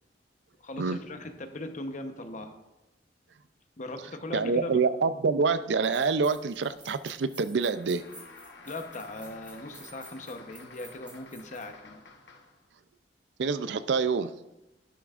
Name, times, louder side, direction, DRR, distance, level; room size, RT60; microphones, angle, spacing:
voice 1, 0.6-2.6 3.8-4.8 8.6-12.0, left 1 dB, 45° left, 6 dB, 0.9 m, -39 dB
voice 2, 4.3-8.0 13.4-14.3, right 4 dB, 85° right, 13 dB, 0.5 m, -26 dB
sound 1, 5.8-11.7, right 1 dB, 10° right, 2.2 m, -51 dB
sound 2, 7.7-12.7, left 3 dB, 85° left, 1.1 m, -52 dB
11.5 x 11.0 x 2.5 m, 0.99 s
head